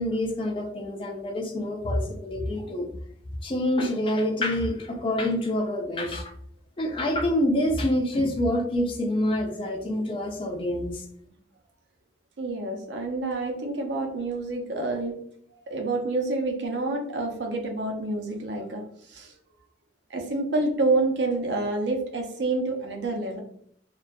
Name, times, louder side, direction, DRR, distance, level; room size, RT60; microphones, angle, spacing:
voice 1, 0.0-2.9 3.4-6.3 6.8-11.0, left 1 dB, 30° left, 3 dB, 0.4 m, -26 dB
voice 2, 12.4-15.1 15.7-19.3 20.1-23.4, right 2 dB, 85° right, 2 dB, 0.6 m, -28 dB
2.5 x 2.3 x 2.2 m, 0.64 s
head